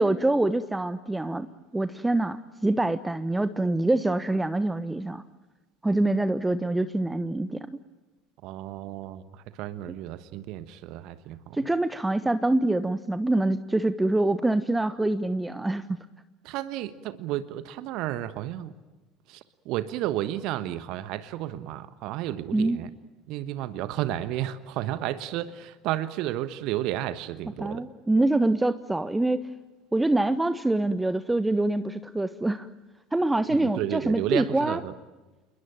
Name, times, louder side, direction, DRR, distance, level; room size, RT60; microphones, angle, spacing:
voice 1, 0.0-1.5 1.7-5.2 5.8-7.7 11.5-16.0 22.5-22.8 27.6-29.5 29.9-32.7 33.1-34.8, right 2 dB, 10° right, 13 dB, 1.1 m, -25 dB
voice 2, 8.4-11.6 16.4-18.7 19.3-22.9 23.3-27.9 33.5-34.9, right 13 dB, 55° right, 14 dB, 1.3 m, -32 dB
29.0 x 21.5 x 9.1 m, 1.2 s
figure-of-eight pair, 70°, 0 cm